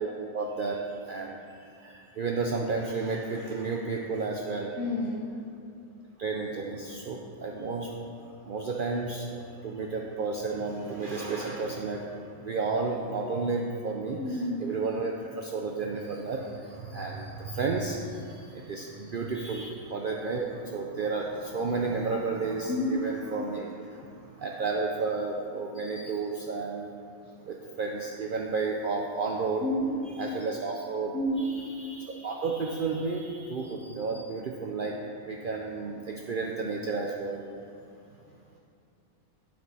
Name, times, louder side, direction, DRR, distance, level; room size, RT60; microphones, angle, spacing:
voice 1, 0.0-4.7 6.2-8.0 8.5-26.9 27.4-29.6 30.1-35.0 35.2-37.4, right 4 dB, 65° right, 0 dB, 0.5 m, -32 dB
voice 2, 4.8-5.3 14.2-14.6 22.7-23.0 29.6-30.0 31.1-31.5, left 1 dB, 65° left, -2 dB, 1.0 m, -29 dB
7.5 x 6.0 x 4.1 m, 2.6 s
omnidirectional pair, 1.4 m